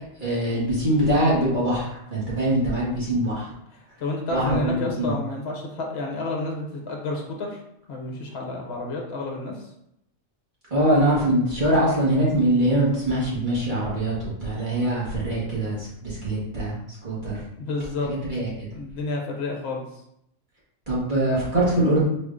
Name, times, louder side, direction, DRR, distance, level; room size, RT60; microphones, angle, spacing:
voice 1, 0.2-3.5 4.3-5.1 10.7-14.1 14.4-17.3 18.0-18.7 20.9-22.0, right 1 dB, 35° right, -7 dB, 1.6 m, -23 dB
voice 2, 4.0-7.6 7.9-9.5 17.6-18.1 18.7-19.8, left 2 dB, 55° left, 0 dB, 1.1 m, -30 dB
4.3 x 2.7 x 3.6 m, 0.78 s
omnidirectional pair, 1.4 m